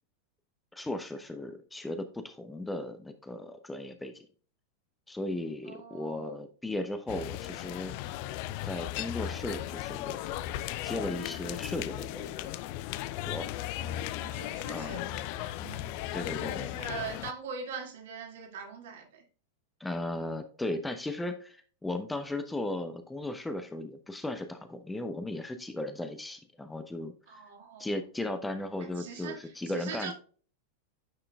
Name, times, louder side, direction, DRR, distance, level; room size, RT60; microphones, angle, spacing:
voice 1, 0.7-4.3 5.1-7.9 8.6-10.2 10.8-12.4 13.2-13.5 14.7-15.0 16.1-16.8 19.8-27.4 27.8-30.1, left 1 dB, 5° left, 0.7 m, -36 dB
voice 2, 5.7-6.4 13.8-15.9 16.4-19.2 27.3-27.9 28.8-30.1, right 6 dB, 55° right, 1.9 m, -42 dB
sound 1, 7.1-17.3, left 13 dB, 45° left, 0.4 m, -36 dB
9.6 x 5.8 x 2.3 m
figure-of-eight pair, 90°, 0 cm